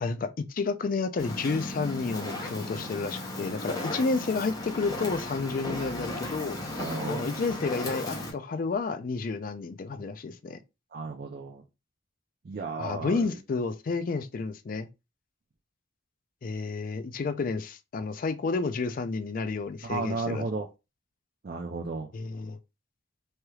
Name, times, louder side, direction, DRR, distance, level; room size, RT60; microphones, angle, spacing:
voice 1, 0.0-6.6 7.1-10.6 12.8-14.9 16.4-20.4 22.1-22.6, left 4 dB, 45° left, 0.3 m, -31 dB
Fire, 1.2-8.3, left 1 dB, 20° left, 0.7 m, -35 dB
voice 2, 6.8-7.3 10.9-11.6 12.4-13.4 19.8-20.7 21.4-22.1, right 3 dB, 50° right, 0.4 m, -34 dB
3.2 x 2.9 x 2.3 m
head